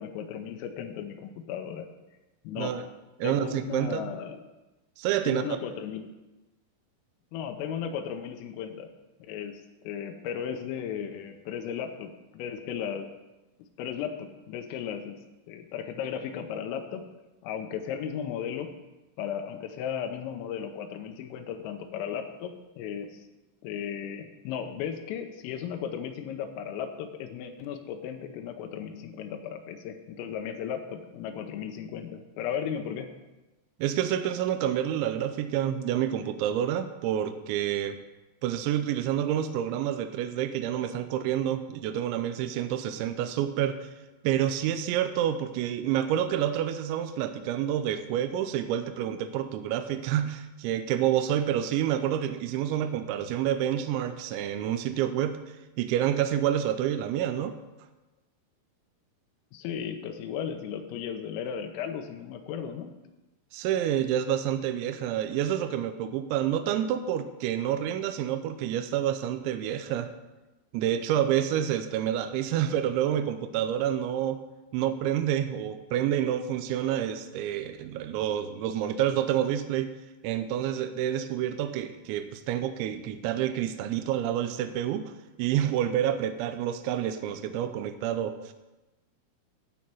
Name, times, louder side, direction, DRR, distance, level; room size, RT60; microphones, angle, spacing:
voice 1, 0.0-1.9 2.4-2.7 3.2-4.4 5.2-6.1 7.3-8.9 9.3-13.1 13.8-15.2 15.5-17.0 17.4-18.7 19.2-23.2 23.6-33.1 59.5-62.9, left 8 dB, 90° left, 5 dB, 3.4 m, -35 dB
voice 2, 3.2-4.1 5.0-5.4 33.8-38.0 38.4-43.9 44.2-55.4 55.8-57.6 63.5-70.1 70.7-74.4 74.7-79.9 80.2-85.1 85.4-88.5, right 10 dB, 85° right, 8 dB, 2.7 m, -28 dB
13.0 x 4.3 x 7.5 m, 1.1 s
omnidirectional pair, 5.8 m